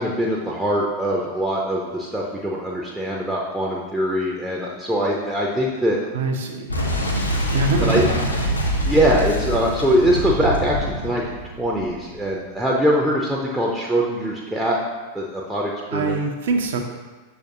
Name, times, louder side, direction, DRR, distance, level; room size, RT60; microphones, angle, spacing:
voice 1, 0.0-6.0 7.8-8.1 8.9-11.2 11.6-14.8 15.1-16.2, equal, 5° right, -3 dB, 0.5 m, -22 dB
voice 2, 6.1-6.7 7.5-8.2 15.9-16.8, right 3 dB, 60° right, 4 dB, 0.5 m, -23 dB
Boom, 6.7-12.3, equal, 80° left, 0.5 m, -25 dB
6.3 x 2.5 x 2.6 m, 1.3 s
figure-of-eight pair, 90°, 0 cm